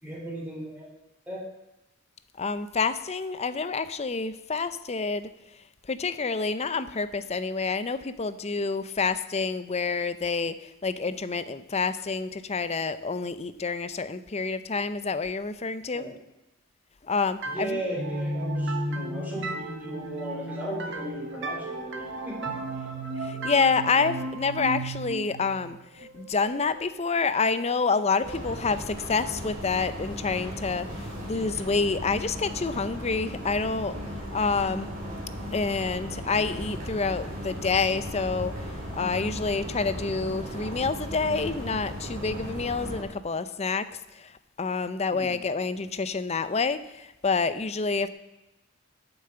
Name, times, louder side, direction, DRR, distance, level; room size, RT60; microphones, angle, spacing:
voice 1, 0.0-0.9 1.3-1.4 15.9-16.2 17.5-22.6 23.9-24.1 28.2-28.4 45.1-45.3, right 1 dB, 10° right, -4 dB, 4.0 m, -36 dB
voice 2, 2.4-5.3 5.9-16.0 17.1-17.8 23.2-34.0 34.3-34.9 35.5-43.9 44.1-44.3 44.6-48.1, left 4 dB, 30° left, 13 dB, 0.6 m, -28 dB
sound 1, 17.4-27.0, right 1 dB, 60° right, 1.4 m, -34 dB
sound 2, 28.2-43.0, equal, 40° right, 3.7 m, -36 dB
9.3 x 7.1 x 7.9 m, 0.95 s
head